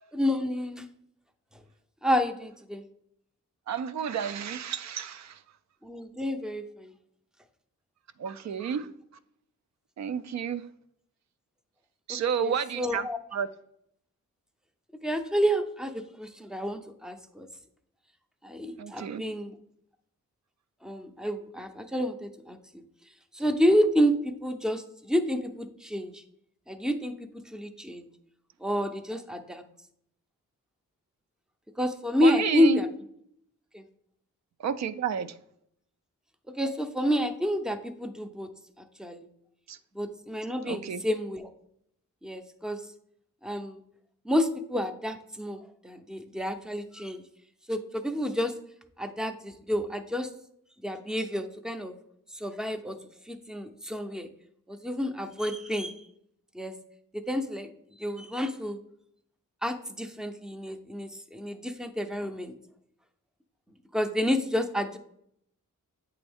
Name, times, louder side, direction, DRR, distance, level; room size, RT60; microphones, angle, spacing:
voice 1, 0.1-0.9 2.0-2.8 5.8-6.9 8.5-8.6 12.4-13.2 15.0-17.5 18.4-19.5 20.8-22.8 23.3-26.2 26.7-27.1 27.5-28.1 28.6-29.6 31.8-32.9 33.7-33.8 36.6-38.5 38.8-39.2 39.9-41.5 42.2-42.8 43.4-43.8 44.2-47.2 47.7-48.5 49.0-50.3 50.8-52.0 52.3-53.0 53.3-54.3 54.7-56.0 56.5-56.7 57.3-57.7 58.0-58.8 59.6-62.6 63.9-65.0, equal, ahead, 8 dB, 0.5 m, -29 dB
voice 2, 3.7-5.4 8.2-8.9 10.0-10.6 12.1-13.5 18.8-19.2 32.2-32.8 34.6-35.3 39.7-39.8 40.6-41.0, right 7 dB, 60° right, 14 dB, 0.4 m, -31 dB
8.2 x 3.5 x 3.5 m, 0.72 s
cardioid pair, 85°, 31 cm